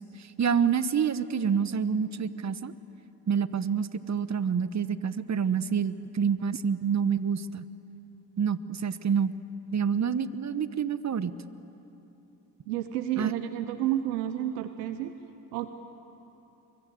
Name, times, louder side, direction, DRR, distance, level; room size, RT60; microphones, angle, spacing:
voice 1, 0.0-2.7 3.3-7.6 8.4-9.3 9.7-11.4 13.2-13.3, right 7 dB, 35° right, 14 dB, 1.1 m, -27 dB
voice 2, 12.7-15.1 15.5-15.7, right 12 dB, 90° right, 10 dB, 0.9 m, -30 dB
28.5 x 23.0 x 7.9 m, 2.9 s
hypercardioid pair, 60°, 47 cm